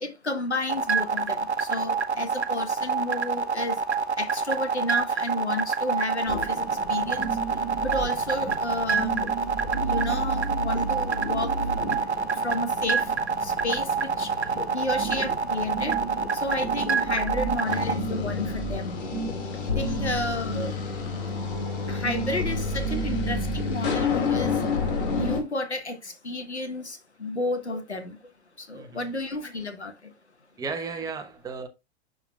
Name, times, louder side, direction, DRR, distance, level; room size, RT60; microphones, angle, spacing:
voice 1, 0.0-3.8 4.2-7.3 7.8-9.2 9.8-11.5 12.4-13.1 13.4-14.3 14.7-16.0 16.3-19.0 19.7-20.8 21.9-24.5 25.1-28.2 28.6-29.9, left 2 dB, 85° left, 1.3 m, -31 dB
sound 1, 0.7-17.9, right 6 dB, 80° right, 0.8 m, -26 dB
sound 2, 6.3-23.7, right 3 dB, 25° left, 4.5 m, -34 dB
sound 3, 17.6-25.4, left 5 dB, 50° left, 2.2 m, -29 dB
voice 2, 28.7-29.1 30.6-31.7, right 5 dB, 10° right, 1.0 m, -35 dB
11.5 x 3.9 x 2.3 m
figure-of-eight pair, 100°, 33 cm